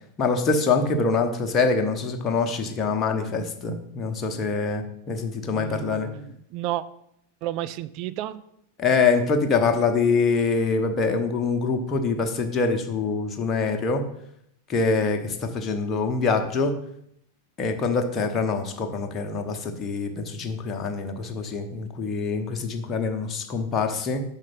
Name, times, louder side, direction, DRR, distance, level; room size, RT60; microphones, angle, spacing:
voice 1, 0.2-6.1 8.8-14.0 14.7-16.7 17.6-24.2, left 4 dB, 25° left, 4 dB, 1.0 m, -24 dB
voice 2, 5.5-6.8 7.4-8.4, right 14 dB, 40° right, 13 dB, 0.4 m, -32 dB
6.4 x 5.0 x 5.6 m, 0.74 s
figure-of-eight pair, 90°, 0 cm